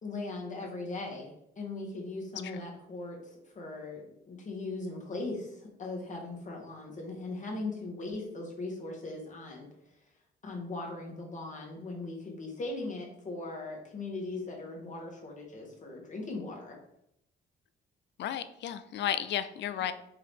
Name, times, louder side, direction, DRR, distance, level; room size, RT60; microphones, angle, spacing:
voice 1, 0.0-3.2 3.5-9.7 10.4-16.8, left 2 dB, 40° left, -1 dB, 1.4 m, -39 dB
voice 2, 18.2-19.9, left 10 dB, 65° left, 12 dB, 0.4 m, -33 dB
4.6 x 2.8 x 3.6 m, 0.77 s
cardioid pair, 90°, 20 cm